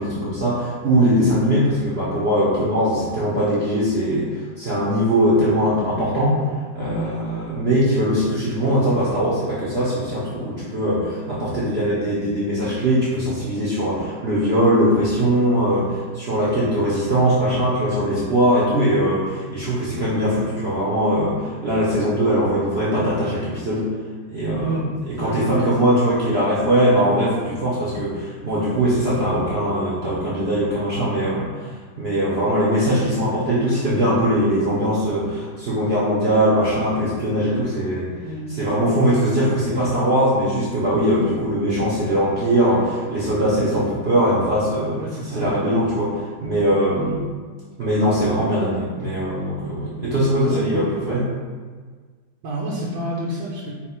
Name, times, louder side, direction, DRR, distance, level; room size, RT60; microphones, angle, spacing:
voice 1, 0.0-6.5 6.7-23.9 24.3-31.7 32.0-38.1 38.5-45.0 45.3-47.3 47.8-51.3, equal, 60° right, -8 dB, 0.6 m, -21 dB
voice 2, 25.2-25.7 38.2-38.5 45.0-45.6 50.5-50.9 52.4-53.7, right 1 dB, 75° right, -5 dB, 1.2 m, -29 dB
4.4 x 2.1 x 4.3 m, 1.5 s
omnidirectional pair, 2.0 m